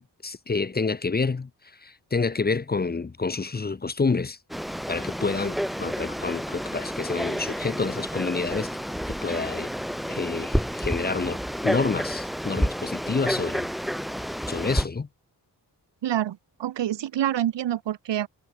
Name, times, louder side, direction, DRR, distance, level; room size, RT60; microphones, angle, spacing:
voice 1, 0.0-1.5 1.8-4.4 4.9-8.7 9.1-9.7 10.1-13.7 14.5-15.1, left 4 dB, 25° left, 0.7 m, -28 dB
Frog, 4.5-14.9, equal, ahead, 3.7 m, -30 dB
voice 2, 16.0-18.3, right 11 dB, 85° right, 1.0 m, -27 dB
wide cardioid pair, 100°, 42 cm